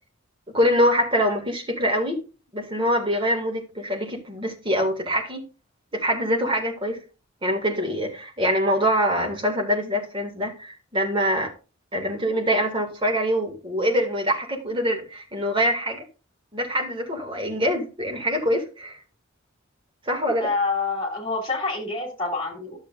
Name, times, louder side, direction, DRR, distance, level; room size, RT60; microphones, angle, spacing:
voice 1, 0.5-2.2 2.5-5.5 5.9-7.0 7.4-11.5 11.9-16.0 16.5-19.0 20.1-20.5, equal, 25° right, 2.1 m, -24 dB
voice 2, 20.4-22.8, left 3 dB, 25° left, 3.3 m, -27 dB
12.0 x 7.3 x 2.5 m
head